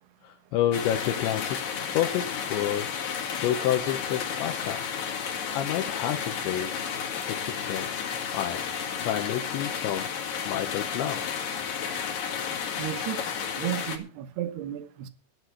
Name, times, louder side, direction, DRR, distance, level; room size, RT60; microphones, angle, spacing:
voice 1, 0.2-3.0 3.3-4.9 5.5-6.7 7.3-7.9 8.3-8.6 9.0-10.1 10.5-11.3, left 11 dB, 75° left, 3.1 m, -29 dB
sound 1, 0.7-14.0, left 7 dB, 55° left, 3.2 m, -32 dB
voice 2, 12.8-13.2 13.6-15.1, right 12 dB, 70° right, 2.9 m, -33 dB
13.0 x 10.5 x 6.1 m
omnidirectional pair, 5.6 m